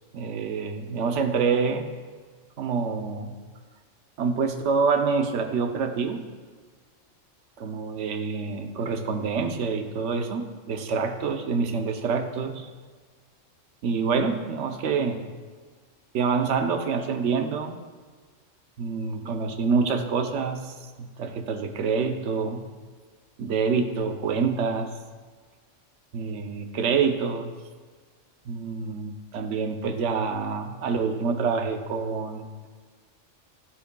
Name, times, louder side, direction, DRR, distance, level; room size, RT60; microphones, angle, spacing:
voice 1, 0.1-1.9 2.6-3.4 4.2-6.2 7.6-12.7 13.8-15.2 16.1-17.8 18.8-22.7 23.4-24.9 26.1-27.5 28.5-32.5, right 5 dB, 65° right, 6 dB, 1.0 m, -26 dB
13.0 x 7.5 x 2.3 m, 1.5 s
omnidirectional pair, 1.3 m